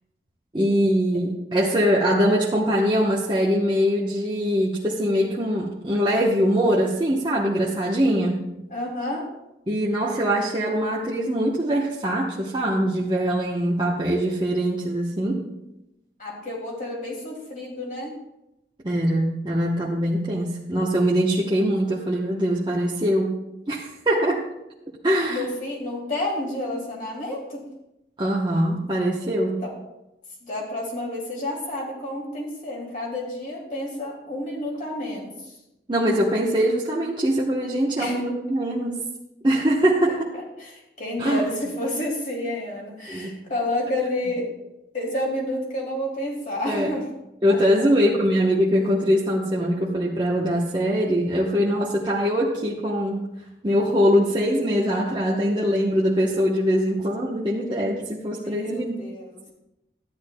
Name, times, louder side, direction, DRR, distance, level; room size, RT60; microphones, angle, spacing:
voice 1, 0.5-8.4 9.7-15.4 18.8-23.3 23.7-24.4 25.0-25.5 28.2-29.6 35.9-39.0 39.4-40.3 41.2-41.5 43.1-43.4 46.7-46.9 47.4-53.2 53.6-59.0, equal, 25° right, -4 dB, 0.9 m, -22 dB
voice 2, 8.7-9.3 16.2-18.1 25.3-27.6 29.6-29.7 30.4-35.5 38.0-38.2 40.6-44.5 44.9-47.1 47.5-47.6 58.2-59.4, left 1 dB, 45° left, -2 dB, 2.5 m, -30 dB
13.0 x 10.0 x 2.2 m, 0.90 s
head